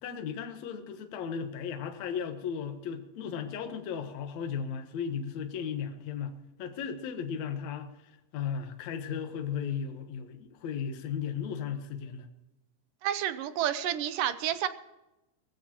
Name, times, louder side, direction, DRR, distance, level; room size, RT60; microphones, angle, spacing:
voice 1, 0.0-12.3, left 7 dB, 65° left, 6 dB, 2.3 m, -36 dB
voice 2, 13.0-14.7, right 11 dB, 80° right, 12 dB, 2.4 m, -30 dB
20.0 x 15.5 x 3.0 m, 0.96 s
omnidirectional pair, 3.9 m